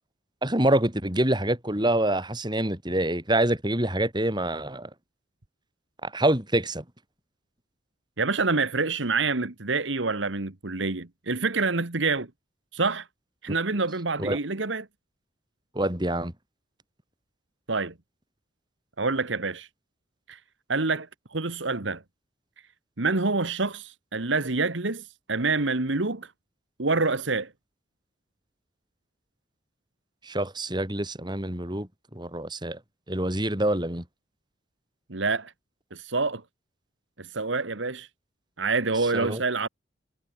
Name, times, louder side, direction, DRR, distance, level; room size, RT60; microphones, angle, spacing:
voice 1, 0.4-4.9 6.0-6.8 14.2-14.4 15.7-16.3 30.2-32.8 33.1-34.0 39.1-39.4, right 1 dB, 25° right, 5.1 m, -26 dB
voice 2, 8.2-12.3 12.7-13.1 13.4-14.9 17.7-17.9 19.0-19.7 20.3-20.4 20.7-22.0 23.0-26.3 26.8-27.5 35.1-35.5 35.9-36.4 37.2-38.1 38.6-39.7, right 3 dB, 75° right, 1.7 m, -27 dB
head